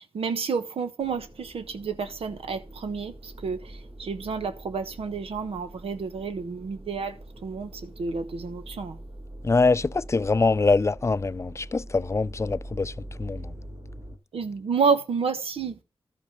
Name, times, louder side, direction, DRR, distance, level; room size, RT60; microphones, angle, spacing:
voice 1, 0.0-7.1 7.4-9.0 14.3-15.8, right 5 dB, 85° right, 1.2 m, -30 dB
sound 1, 1.0-14.2, right 1 dB, 45° right, 2.6 m, -43 dB
voice 2, 9.4-12.9 13.2-13.5, left 3 dB, 30° left, 0.4 m, -23 dB
13.0 x 5.3 x 5.2 m
cardioid pair, 60°, 10 cm